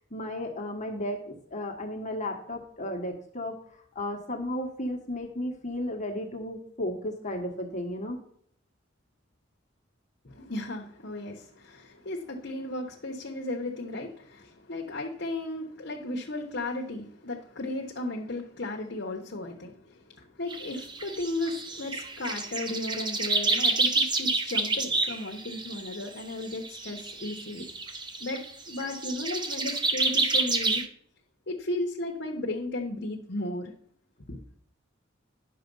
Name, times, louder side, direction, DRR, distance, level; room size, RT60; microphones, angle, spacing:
voice 1, 0.1-8.2, left 1 dB, 40° left, 2 dB, 1.3 m, -34 dB
voice 2, 10.2-27.7 28.2-28.4 28.7-30.8 31.5-33.7 34.3-34.4, left 2 dB, 60° left, 0 dB, 1.1 m, -35 dB
sound 1, 20.5-30.9, right 3 dB, 25° right, 0.8 m, -29 dB
10.5 x 6.2 x 5.4 m, 0.63 s
head